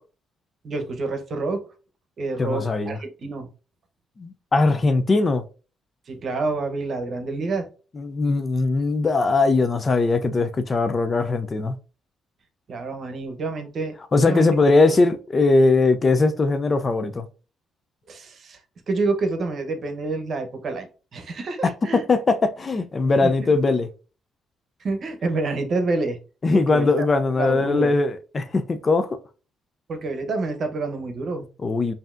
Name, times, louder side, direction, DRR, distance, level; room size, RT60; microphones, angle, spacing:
voice 1, 0.6-1.6 2.2-3.5 6.1-7.7 12.7-14.5 18.1-18.6 18.9-22.0 23.2-23.5 24.8-26.2 26.7-27.1 27.4-27.9 29.9-31.4, right 3 dB, 55° right, 0.8 m, -28 dB
voice 2, 2.4-3.0 4.2-5.4 8.0-11.7 14.1-17.3 21.9-23.9 26.4-29.2 31.6-31.9, left 3 dB, 35° left, 0.4 m, -20 dB
5.3 x 2.7 x 2.5 m
cardioid pair, 90°, 0 cm